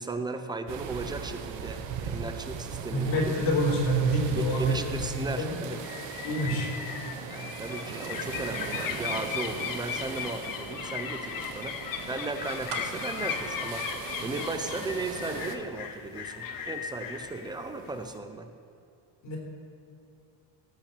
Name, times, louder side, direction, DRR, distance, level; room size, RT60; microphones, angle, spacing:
voice 1, 0.0-3.1 3.4-3.5 4.4-5.8 6.4-6.6 7.3-11.8 12.1-13.9 14.2-18.5, right 3 dB, 10° right, 7 dB, 0.3 m, -36 dB
sound 1, 0.7-15.6, right 7 dB, 65° right, 1.1 m, -39 dB
voice 2, 2.9-4.8 5.4-5.5 6.2-6.7 19.2-19.4, right 1 dB, 60° left, -2 dB, 3.6 m, -26 dB
sound 2, 5.7-18.2, left 7 dB, 45° left, 0.8 m, -37 dB
sound 3, 12.7-14.7 15.0-15.1, right 7 dB, 85° right, 1.4 m, -42 dB
17.5 x 6.0 x 6.7 m, 2.5 s
cardioid pair, 170°, 48 cm